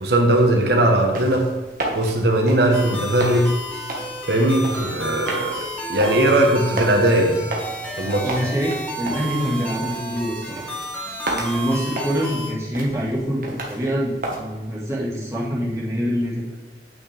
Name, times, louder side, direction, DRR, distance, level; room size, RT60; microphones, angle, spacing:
voice 1, 0.0-1.5 1.9-3.5 4.3-5.5 5.9-7.4 8.0-8.3, right 1 dB, 70° right, 1 dB, 1.3 m, -18 dB
sound 1, 1.0-14.4, right 2 dB, 50° right, 1.6 m, -33 dB
sound 2, 2.7-12.5, right 1 dB, 10° left, 1.5 m, -32 dB
voice 2, 8.2-10.7 11.3-16.4, equal, 15° right, -6 dB, 2.0 m, -25 dB
8.9 x 6.4 x 3.5 m, 1.1 s
head